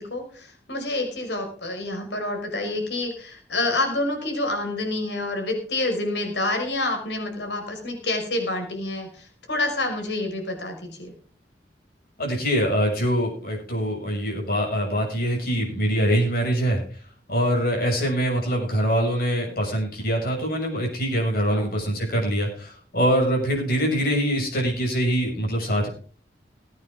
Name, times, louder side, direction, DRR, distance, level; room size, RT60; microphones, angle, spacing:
voice 1, 0.0-11.1 21.5-21.7, left 2 dB, 75° left, 4 dB, 5.4 m, -28 dB
voice 2, 12.2-16.8 17.3-25.9, equal, 60° left, -1 dB, 6.7 m, -24 dB
21.5 x 9.3 x 3.7 m, 0.41 s
head